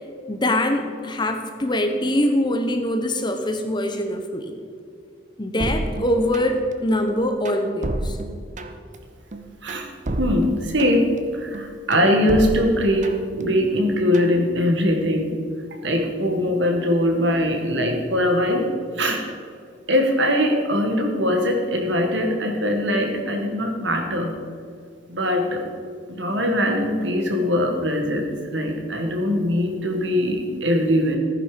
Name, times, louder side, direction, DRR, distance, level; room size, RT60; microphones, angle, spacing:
voice 1, 0.3-4.5 5.4-8.2, left 1 dB, 20° left, 6 dB, 0.9 m, -23 dB
sound 1, 5.6-6.7 7.1-9.0 9.3-11.2 11.5-13.4 13.8-14.4, right 1 dB, 35° right, 0.8 m, -30 dB
voice 2, 10.2-15.3 15.8-18.6 18.9-19.2 19.9-24.3 25.1-25.6 26.1-31.2, equal, 60° right, 3 dB, 1.8 m, -21 dB
15.0 x 9.8 x 5.1 m, 2.2 s
head